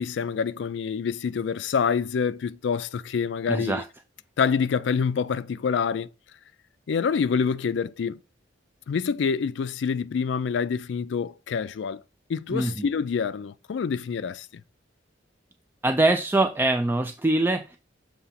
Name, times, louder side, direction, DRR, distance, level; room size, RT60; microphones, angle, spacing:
voice 1, 0.0-3.8 4.4-6.1 6.9-8.2 8.9-12.0 12.3-14.5, left 6 dB, 70° left, 0.4 m, -26 dB
voice 2, 3.5-3.8 12.5-12.9 15.8-17.8, right 2 dB, 10° right, 0.3 m, -23 dB
6.9 x 2.8 x 5.7 m
head